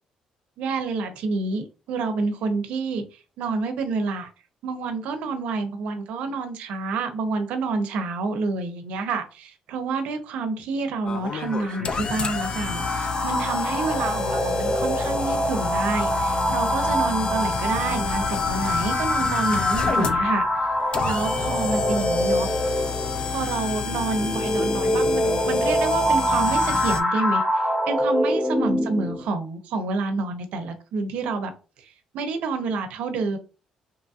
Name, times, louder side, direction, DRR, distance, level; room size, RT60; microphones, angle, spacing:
voice 1, 0.6-3.0 3.4-4.3 4.6-20.5 21.0-22.5 23.3-31.5 31.8-31.9 32.1-33.4, right 4 dB, 85° right, 0.6 m, -28 dB
sound 1, 11.1-27.0, left 6 dB, 45° left, 0.3 m, -30 dB
sound 2, 11.3-29.2, equal, ahead, 0.9 m, -25 dB
2.9 x 2.7 x 2.4 m
cardioid pair, 110°, 2 cm